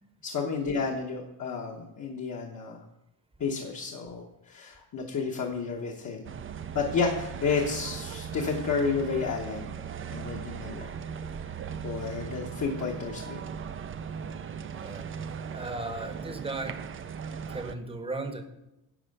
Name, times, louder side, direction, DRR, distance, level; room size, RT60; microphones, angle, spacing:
voice 1, 0.2-2.8 3.4-6.3 6.7-9.7 10.1-10.9 11.8-13.4, left 5 dB, 45° left, 0 dB, 1.1 m, -31 dB
sound 1, 6.2-17.7, right 7 dB, 30° right, 0.4 m, -38 dB
voice 2, 14.7-15.1 15.5-16.8 17.5-18.4, right 2 dB, 15° right, 6 dB, 0.9 m, -36 dB
11.0 x 4.4 x 6.5 m, 0.90 s
wide cardioid pair, 160°, 42 cm